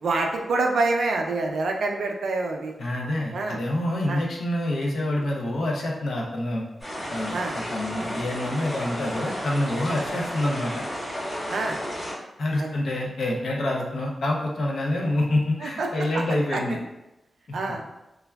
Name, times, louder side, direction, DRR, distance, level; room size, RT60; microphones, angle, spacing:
voice 1, 0.0-2.7 3.3-3.6 4.1-4.2 7.3-7.6 11.5-11.8 12.6-12.8 15.6-15.9 16.1-16.2 16.5-16.6 17.5-17.8, right 3 dB, 85° right, 2 dB, 0.4 m, -26 dB
voice 2, 2.8-6.6 7.1-10.8 12.4-16.8 17.5-17.6, left 1 dB, 70° left, -1 dB, 0.5 m, -27 dB
sound 1, 6.8-12.1, equal, 20° left, 1.3 m, -33 dB
3.3 x 2.2 x 2.2 m, 0.95 s
wide cardioid pair, 130°, 0 cm